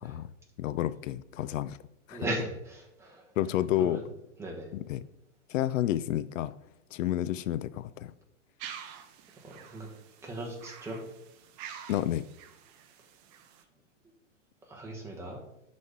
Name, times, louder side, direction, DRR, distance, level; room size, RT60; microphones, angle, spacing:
voice 1, 0.6-1.8 2.1-2.3 3.4-4.0 4.7-5.0 5.5-6.5 6.9-8.1 11.9-12.2, left 12 dB, 80° left, 15 dB, 0.5 m, -30 dB
voice 2, 2.1-3.2 3.8-4.0 4.4-4.7 9.4-9.9 10.2-11.0 14.7-15.4, right 1 dB, 5° right, -2 dB, 1.2 m, -37 dB
sound 1, 8.6-13.6, right 8 dB, 35° right, 0.6 m, -48 dB
7.1 x 4.2 x 4.9 m, 0.82 s
hypercardioid pair, 145°, 38 cm